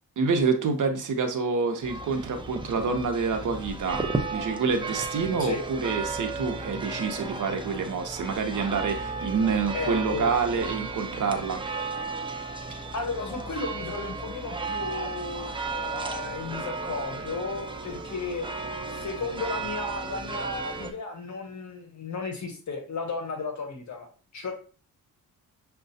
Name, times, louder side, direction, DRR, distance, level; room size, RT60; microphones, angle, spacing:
voice 1, 0.2-11.6, right 5 dB, 60° right, 5 dB, 0.7 m, -27 dB
sound 1, 1.8-20.9, right 3 dB, 15° right, 0.5 m, -34 dB
voice 2, 9.7-10.3 12.9-18.4 18.9-24.5, left 4 dB, 50° left, 3 dB, 0.9 m, -34 dB
6.3 x 2.2 x 2.6 m, 0.39 s
cardioid pair, 100°, 36 cm